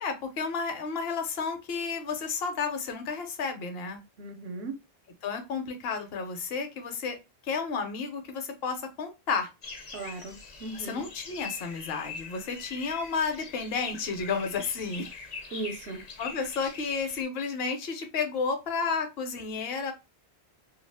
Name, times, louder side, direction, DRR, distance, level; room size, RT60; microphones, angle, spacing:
voice 1, 0.0-4.0 5.2-7.2 7.4-9.5 10.7-15.1 16.2-19.9, left 5 dB, 70° left, 0.9 m, -32 dB
voice 2, 4.2-4.8 9.9-10.3 10.6-11.0 15.5-16.1, right 3 dB, 70° right, 0.8 m, -37 dB
sound 1, 9.6-17.2, left 5 dB, 50° left, 0.6 m, -43 dB
2.4 x 2.4 x 3.3 m
omnidirectional pair, 1.1 m